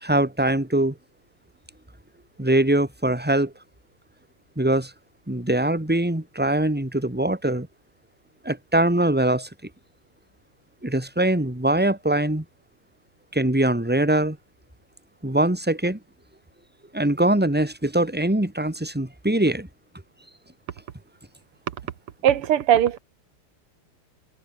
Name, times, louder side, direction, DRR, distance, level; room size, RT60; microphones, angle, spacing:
voice 1, 0.0-0.9 2.4-3.5 4.6-4.9 5.3-7.7 8.4-9.5 10.8-12.4 13.3-14.4 15.2-16.0 16.9-19.7, right 1 dB, 5° right, 3.1 m, -22 dB
voice 2, 22.2-23.0, right 10 dB, 80° right, 2.1 m, -19 dB
omnidirectional pair, 2.4 m